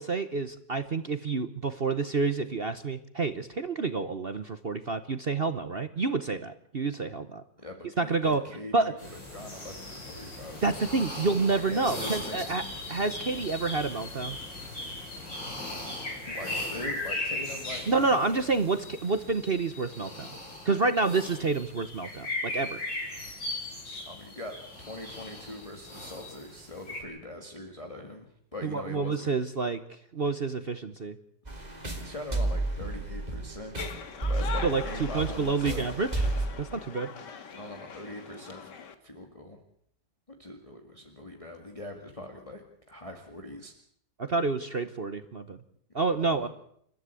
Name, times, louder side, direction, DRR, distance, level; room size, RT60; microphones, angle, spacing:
voice 1, 0.0-7.4 8.0-8.4 8.7-8.9 10.6-12.6 12.9-14.4 17.9-20.3 20.6-22.8 28.6-31.2 34.6-37.1 44.2-45.6 45.9-46.5, right 4 dB, 40° right, 11 dB, 1.0 m, -29 dB
voice 2, 7.6-10.6 11.5-12.7 16.2-18.6 24.1-29.3 31.9-33.8 34.3-35.9 37.5-38.7 39.0-39.6 40.4-43.7 46.1-46.5, left 1 dB, 20° left, 3 dB, 2.1 m, -42 dB
sound 1, 9.0-27.0, left 2 dB, 90° left, 6.9 m, -38 dB
sound 2, 31.5-36.5, right 2 dB, 20° right, 3.6 m, -32 dB
sound 3, 33.8-38.9, left 6 dB, 75° left, 2.3 m, -41 dB
29.5 x 14.0 x 8.4 m, 0.71 s
omnidirectional pair, 1.9 m